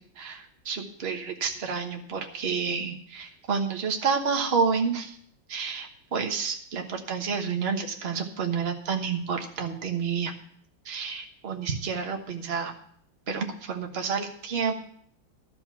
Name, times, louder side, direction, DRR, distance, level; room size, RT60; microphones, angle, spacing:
voice 1, 0.0-5.2 5.5-10.3 10.8-12.7 13.3-14.7, right 5 dB, 35° right, 2 dB, 1.2 m, -29 dB
12.5 x 5.9 x 6.9 m, 0.64 s
omnidirectional pair, 2.3 m